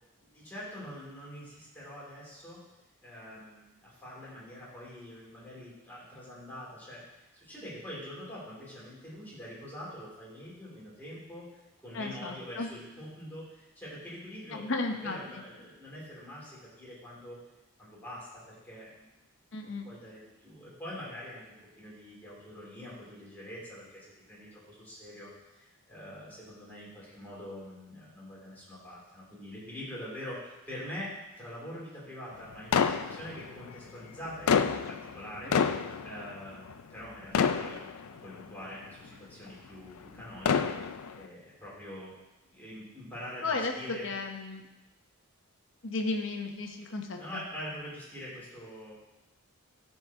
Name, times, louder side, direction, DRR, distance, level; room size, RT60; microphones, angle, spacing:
voice 1, 0.2-2.6 3.0-11.5 11.8-14.7 15.0-17.4 17.8-19.1 19.6-31.1 31.4-34.6 34.9-35.6 36.0-37.8 38.2-40.8 41.2-42.1 42.5-44.1 47.2-48.9, equal, 10° left, -8 dB, 2.7 m, -44 dB
voice 2, 11.9-12.7 14.5-15.2 19.5-19.9 43.4-44.6 45.8-47.4, left 3 dB, 55° left, 4 dB, 0.9 m, -34 dB
sound 1, 32.7-33.7 34.2-37.1 37.3-38.4 39.0-39.1 40.2-41.2, left 6 dB, 80° left, 0.4 m, -28 dB
13.0 x 4.3 x 3.6 m, 1.0 s
head